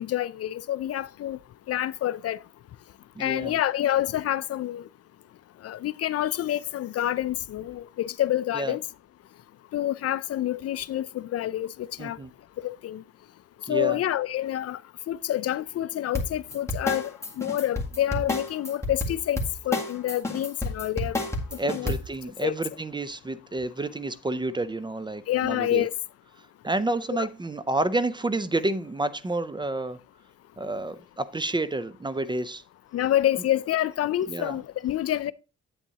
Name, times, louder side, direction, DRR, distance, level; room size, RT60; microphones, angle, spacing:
voice 1, 0.0-1.4 1.7-2.4 3.2-4.8 5.6-8.8 9.7-12.2 12.6-13.0 13.7-14.8 15.1-19.4 19.6-21.2 21.6-21.9 22.4-22.5 25.3-25.9 27.1-27.3 32.9-35.3, left 12 dB, 55° left, 0.4 m, -27 dB
voice 2, 3.2-3.6 8.5-8.8 12.0-12.3 13.7-14.0 21.6-25.9 26.6-30.0 30.6-32.6 34.3-34.6, right 2 dB, 15° right, 0.5 m, -29 dB
sound 1, 16.1-22.2, left 2 dB, 10° left, 1.9 m, -29 dB
8.6 x 8.2 x 2.8 m
cardioid pair, 90°, 30 cm